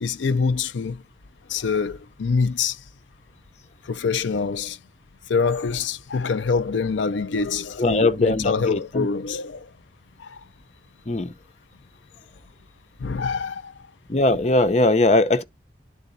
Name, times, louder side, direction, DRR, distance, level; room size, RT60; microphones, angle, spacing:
voice 1, 0.0-1.0 1.5-2.8 3.9-4.8 5.3-9.7 10.2-10.4 13.0-13.7, left 5 dB, 90° left, 0.5 m, -25 dB
voice 2, 7.8-9.1 11.1-11.3 14.1-15.4, left 2 dB, 35° left, 0.6 m, -20 dB
11.0 x 3.8 x 2.6 m
head